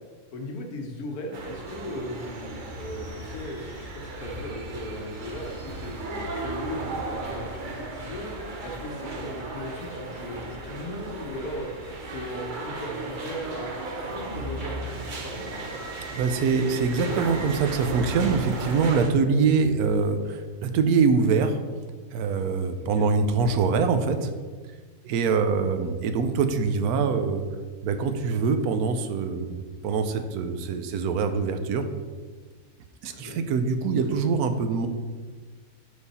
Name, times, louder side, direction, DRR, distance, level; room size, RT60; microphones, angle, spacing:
voice 1, 0.3-7.5 7.7-8.3 8.6-11.7 12.0-13.7 14.0-15.8 22.8-23.1 33.1-33.4 34.0-34.3, left 1 dB, 85° left, 2 dB, 1.5 m, -37 dB
sound 1, 1.3-19.1, right 2 dB, 45° right, 0.7 m, -35 dB
voice 2, 16.1-21.6 22.1-24.3 25.0-27.4 27.8-31.9 33.0-34.9, right 5 dB, 90° right, 8 dB, 1.1 m, -24 dB
6.4 x 5.2 x 4.2 m, 1.5 s
omnidirectional pair, 1.5 m